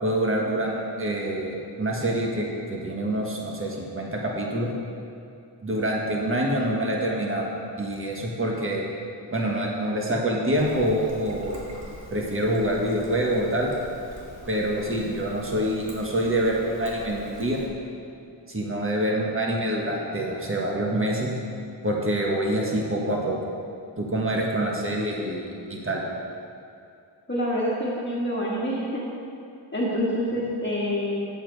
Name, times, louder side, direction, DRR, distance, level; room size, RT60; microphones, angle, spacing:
voice 1, 0.0-4.7 5.6-7.5 7.7-8.8 9.3-11.7 12.1-13.7 14.5-17.6 18.5-21.3 21.8-23.4 24.0-26.0, right 1 dB, 30° right, -2 dB, 1.4 m, -26 dB
Trickle dribble, 10.5-17.7, right 1 dB, 80° right, 1.8 m, -44 dB
voice 2, 27.3-29.1 29.7-31.2, equal, 25° left, -6 dB, 1.6 m, -27 dB
9.0 x 7.3 x 4.7 m, 2.5 s
wide cardioid pair, 90°, 44 cm